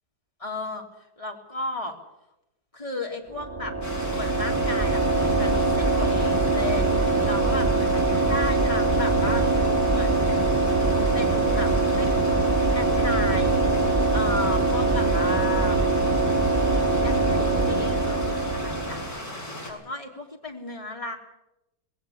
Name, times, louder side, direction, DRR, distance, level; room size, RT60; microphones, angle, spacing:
voice 1, 0.4-0.9 1.2-2.0 2.7-3.7 4.1-9.4 9.9-10.5 11.1-12.1 12.7-13.6 14.1-15.8 17.0-19.2 19.6-21.2, left 2 dB, 20° left, 2 dB, 3.2 m, -34 dB
sound 1, 3.4-19.2, right 2 dB, 10° right, 0.7 m, -23 dB
Stream, 3.8-19.7, left 1 dB, 60° left, 6.5 m, -37 dB
20.0 x 18.0 x 8.5 m, 0.89 s
omnidirectional pair, 1.8 m